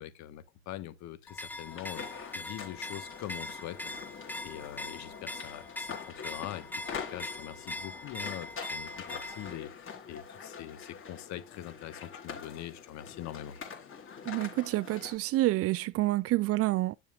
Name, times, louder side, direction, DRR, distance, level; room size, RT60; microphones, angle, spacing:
voice 1, 0.0-2.0 2.3-13.6, left 12 dB, 55° left, 1.3 m, -43 dB
sound 1, 1.3-9.6, left 1 dB, 5° left, 0.7 m, -42 dB
sound 2, 1.6-15.2, left 6 dB, 40° left, 3.4 m, -45 dB
voice 2, 14.2-16.9, right 17 dB, 45° right, 0.5 m, -28 dB
8.9 x 6.9 x 2.4 m
supercardioid pair, 100°, 33 cm